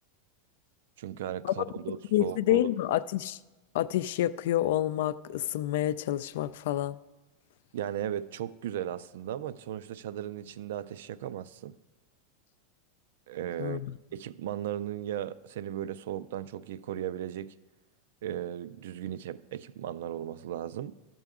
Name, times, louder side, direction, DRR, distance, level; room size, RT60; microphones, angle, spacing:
voice 1, 1.0-2.6 7.7-11.8 13.3-13.8 14.1-17.5 18.2-20.9, right 11 dB, 80° right, 0.3 m, -36 dB
voice 2, 2.1-3.4 3.7-7.0 13.6-14.0, left 13 dB, 70° left, 0.3 m, -28 dB
12.5 x 6.9 x 3.6 m
supercardioid pair, 145°, 0 cm